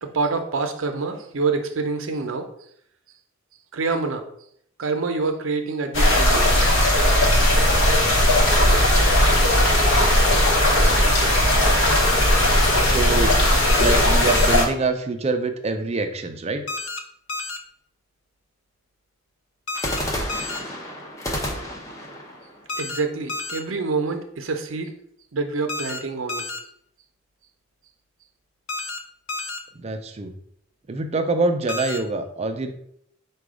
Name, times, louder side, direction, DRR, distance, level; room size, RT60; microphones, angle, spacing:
voice 1, 0.0-2.5 3.7-4.3 4.8-6.5 22.8-24.9 25.3-26.4, right 4 dB, 75° right, 6 dB, 0.6 m, -26 dB
sound 1, 5.9-14.6, left 1 dB, 65° left, 1.0 m, -17 dB
voice 2, 12.7-13.3 13.8-16.6 29.7-30.3 30.9-32.7, right 3 dB, 30° right, 7 dB, 0.4 m, -25 dB
sound 2, 13.7-14.0 14.3-14.6 16.7-17.0 17.3-17.6 19.7-20.0 20.3-20.6 22.7-23.0 23.3-23.6 25.7-26.0 26.3-26.6 28.7-29.0 29.3-29.6 31.7-32.0, left 3 dB, 85° left, 0.6 m, -30 dB
sound 3, 19.7-23.7, equal, 15° left, 0.7 m, -32 dB
4.9 x 2.3 x 4.8 m, 0.69 s
head